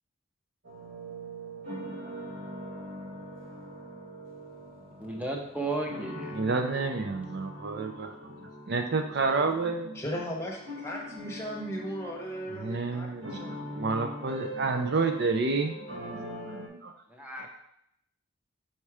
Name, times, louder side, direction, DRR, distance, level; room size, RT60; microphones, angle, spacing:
sound 1, 0.6-16.7, equal, 75° right, 1.2 m, -42 dB
voice 1, 5.0-6.3 17.1-17.5, right 2 dB, 5° right, 0 dB, 0.8 m, -34 dB
voice 2, 6.3-8.1 8.7-10.0 12.5-15.7 16.5-16.9 17.4-17.5, right 4 dB, 55° right, 6 dB, 0.5 m, -29 dB
voice 3, 9.9-14.0, equal, 15° left, -2 dB, 1.0 m, -37 dB
4.6 x 4.3 x 4.8 m, 0.75 s
head